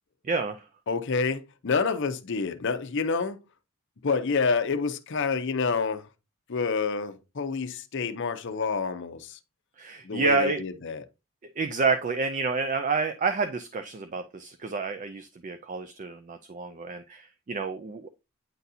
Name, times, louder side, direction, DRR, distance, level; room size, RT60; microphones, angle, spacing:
voice 1, 0.3-0.6 9.8-10.6 11.6-18.1, right 4 dB, 35° right, 0.4 m, -29 dB
voice 2, 0.9-3.4 4.0-6.1 6.5-9.4 10.0-11.0, left 4 dB, 55° left, 0.6 m, -28 dB
9.1 x 4.0 x 2.7 m
head